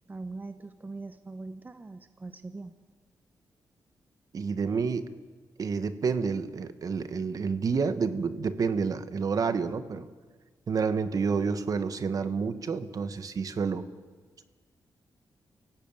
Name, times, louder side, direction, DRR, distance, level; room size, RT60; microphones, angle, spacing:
voice 1, 0.1-2.8, right 3 dB, 25° right, 10 dB, 1.0 m, -41 dB
voice 2, 4.3-5.1 5.6-10.1 10.7-13.8, right 5 dB, 55° right, 11 dB, 1.4 m, -29 dB
30.0 x 16.5 x 9.1 m, 1.5 s
cardioid pair, 105°, 7 cm